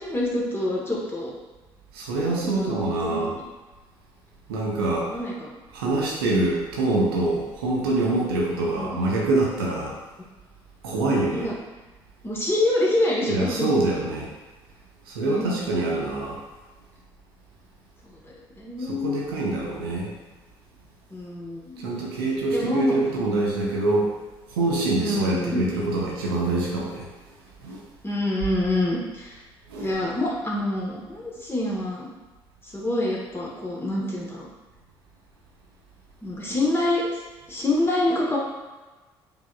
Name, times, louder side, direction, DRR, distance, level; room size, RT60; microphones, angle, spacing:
voice 1, 0.0-1.3 2.2-3.4 5.0-5.3 8.7-9.0 11.3-11.5 12.2-13.7 15.2-15.5 18.1-18.2 18.6-19.2 21.1-21.9 22.5-23.0 23.5-23.7 25.0-25.6 28.0-29.4 29.8-32.1 32.7-34.5 36.2-37.0 37.5-38.4, left 1 dB, 20° left, -4 dB, 1.2 m, -26 dB
voice 2, 1.9-3.3 4.5-5.1 5.7-10.0 10.8-11.5 13.3-14.3 15.1-16.4 18.9-20.1 21.8-24.1 24.5-27.1 27.6-27.8 29.7-29.9, right 2 dB, 80° right, -3 dB, 0.7 m, -25 dB
4.7 x 2.8 x 2.3 m, 1.2 s
figure-of-eight pair, 50°, 12 cm